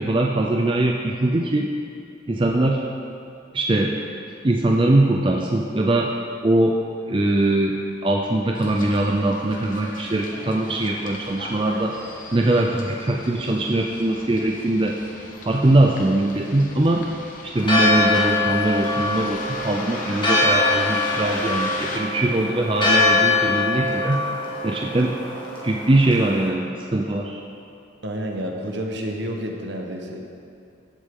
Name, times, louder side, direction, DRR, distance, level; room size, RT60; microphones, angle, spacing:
voice 1, 0.0-1.7 2.3-2.8 3.5-4.0 4.4-6.1 6.4-6.8 7.1-12.0 12.3-15.0 15.5-17.1 17.4-24.2 24.6-25.1 25.6-27.4, right 2 dB, 25° right, 1 dB, 0.5 m, -21 dB
Bus, 8.5-22.0, left 2 dB, 45° left, 1.1 m, -37 dB
Church bell, 17.6-26.5, left 2 dB, 25° left, 1.7 m, -23 dB
voice 2, 28.0-30.2, equal, 65° right, 1 dB, 1.2 m, -29 dB
14.5 x 8.3 x 3.8 m, 2.5 s
head